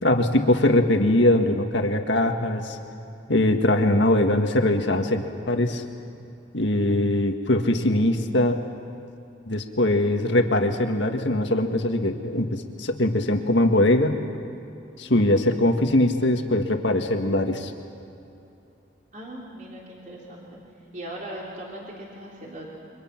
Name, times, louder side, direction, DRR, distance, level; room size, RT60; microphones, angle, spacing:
voice 1, 0.0-2.8 3.3-5.8 6.5-8.6 9.5-14.2 15.0-17.7, left 1 dB, 70° left, 5 dB, 1.8 m, -21 dB
voice 2, 19.1-20.6 20.9-22.7, right 1 dB, 40° right, -3 dB, 3.6 m, -39 dB
29.0 x 24.5 x 6.0 m, 2.9 s
head